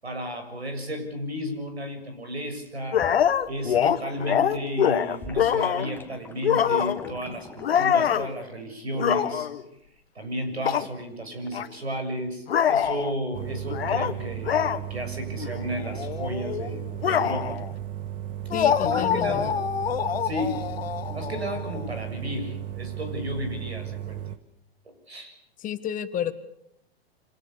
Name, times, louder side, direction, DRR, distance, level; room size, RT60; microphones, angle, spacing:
voice 1, 0.0-9.5 10.2-17.6 18.8-19.6 20.2-20.7 21.1-24.2 24.9-25.3, equal, 85° right, 7 dB, 7.3 m, -33 dB
sound 1, 2.6-4.0 4.2-8.3, left 1 dB, 5° left, 2.4 m, -46 dB
sound 2, 2.9-6.0 6.4-7.2 7.6-8.3 8.9-9.6 10.6-10.9 11.5-11.7 12.5-13.1 13.7-14.1 14.4-14.8 15.4-15.6 15.8-17.7 18.5-21.8, left 8 dB, 70° left, 1.6 m, -25 dB
sound 3, 13.3-24.4, right 11 dB, 25° right, 1.5 m, -35 dB
voice 2, 18.5-19.4 25.6-26.3, left 10 dB, 25° left, 11 dB, 1.8 m, -30 dB
28.0 x 26.5 x 6.9 m, 0.73 s
figure-of-eight pair, 105°, 31 cm